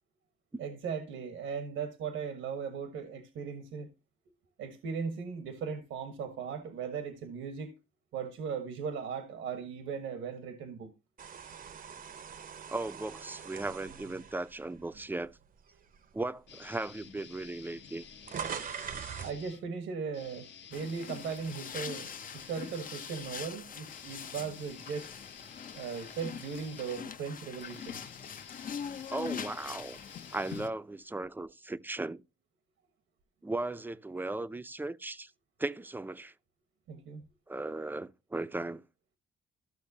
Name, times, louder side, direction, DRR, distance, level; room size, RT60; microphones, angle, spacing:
voice 1, 0.6-3.9 4.6-7.7 8.1-10.9 19.2-25.1 25.8-28.0 36.9-37.2, right 6 dB, 85° right, 1.2 m, -38 dB
sound 1, 11.2-15.4 15.9-16.1 17.0-17.1 17.3-19.4, right 7 dB, 45° right, 0.7 m, -42 dB
voice 2, 12.7-15.4 16.1-18.0 29.1-30.0 30.3-32.2 33.4-35.3 35.6-36.3 37.5-38.8, right 2 dB, 10° right, 0.5 m, -37 dB
sound 2, 16.5-19.6 20.1-31.3, left 7 dB, 65° left, 1.2 m, -52 dB
sound 3, 20.7-30.7, left 7 dB, 45° left, 0.6 m, -43 dB
13.5 x 6.2 x 2.7 m
cardioid pair, 90°, 20 cm